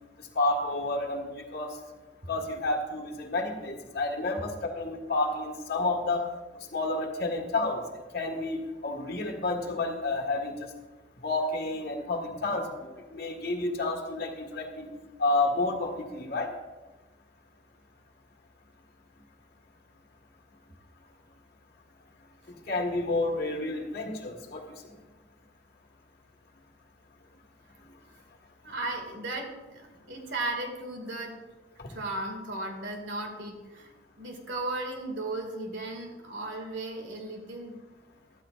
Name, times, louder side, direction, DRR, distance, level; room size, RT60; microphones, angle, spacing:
voice 1, 0.4-1.7 2.3-6.3 6.7-7.8 8.1-10.5 11.2-14.9 15.2-16.5 22.7-24.7 31.8-31.9, left 2 dB, 55° left, 2 dB, 1.7 m, -30 dB
voice 2, 28.6-31.4 31.9-33.9 34.2-37.8, right 2 dB, 90° right, 2 dB, 2.3 m, -36 dB
13.0 x 13.0 x 2.5 m, 1.2 s
head